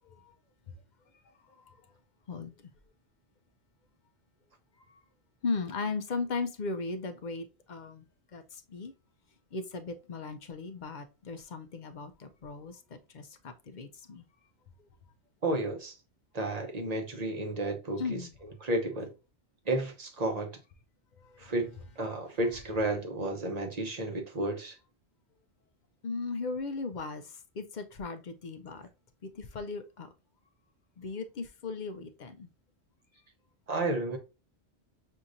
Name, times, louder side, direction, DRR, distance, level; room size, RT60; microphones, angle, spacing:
voice 1, 5.4-8.0 8.3-8.4 8.7-8.9 9.5-12.7 13.1-13.2 13.7-14.2 18.0-18.3 26.0-27.2 27.6-28.8 29.4-30.1 31.0-32.5, left 4 dB, 55° left, 0.6 m, -36 dB
voice 2, 15.4-15.9 16.3-19.1 19.7-20.6 21.4-24.8 33.7-34.2, right 2 dB, 40° right, 0.9 m, -32 dB
6.2 x 2.8 x 2.5 m
omnidirectional pair, 1.2 m